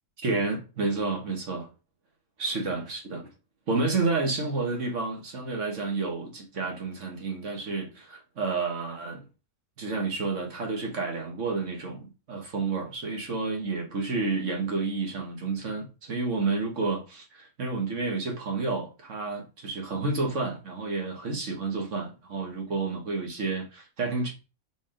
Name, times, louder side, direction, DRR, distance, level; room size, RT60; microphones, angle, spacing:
voice 1, 0.2-1.7 2.4-3.3 3.7-9.2 9.8-24.3, right 3 dB, 55° right, 1.8 m, -30 dB
5.1 x 3.8 x 5.0 m
omnidirectional pair, 1.5 m